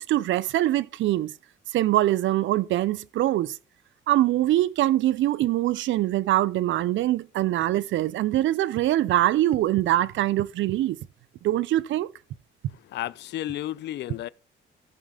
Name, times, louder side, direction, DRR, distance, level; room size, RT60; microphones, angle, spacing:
voice 1, 0.0-1.3 1.7-3.6 4.1-11.0 11.4-12.1, right 14 dB, 70° right, 0.5 m, -23 dB
voice 2, 12.9-14.3, left 13 dB, 60° left, 0.4 m, -32 dB
14.0 x 5.4 x 3.7 m
cardioid pair, 90°, 20 cm